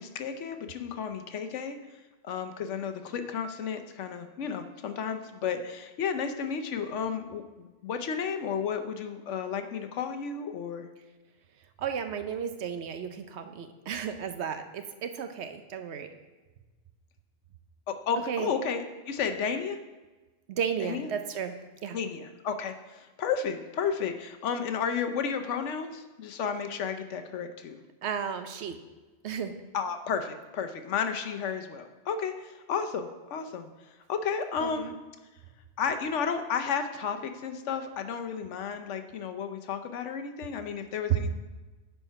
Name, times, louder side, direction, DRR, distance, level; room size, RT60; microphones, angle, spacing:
voice 1, 0.0-1.8 2.2-10.9 17.9-19.8 20.8-21.1 21.9-27.8 29.7-33.7 34.1-34.9 35.8-41.3, left 6 dB, 75° left, 7 dB, 1.0 m, -32 dB
voice 2, 11.8-16.1 18.1-18.5 20.5-21.5 21.8-22.0 28.0-28.8 29.2-29.5 34.6-34.9, right 7 dB, 70° right, 8 dB, 0.9 m, -34 dB
9.1 x 4.5 x 5.5 m, 1.2 s
omnidirectional pair, 1.2 m